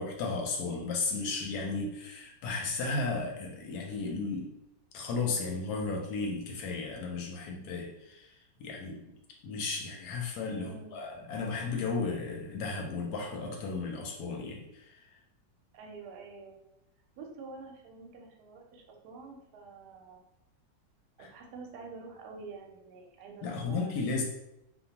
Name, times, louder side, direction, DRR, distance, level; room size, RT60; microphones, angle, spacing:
voice 1, 0.0-4.5 4.9-9.1 9.4-15.0 21.2-21.3 23.4-24.2, left 3 dB, 70° left, 1 dB, 1.0 m, -34 dB
voice 2, 10.6-11.0 15.7-16.6 17.2-20.2 21.2-24.0, right 4 dB, 70° right, 1 dB, 1.0 m, -47 dB
2.8 x 2.1 x 2.8 m, 0.86 s
omnidirectional pair, 1.9 m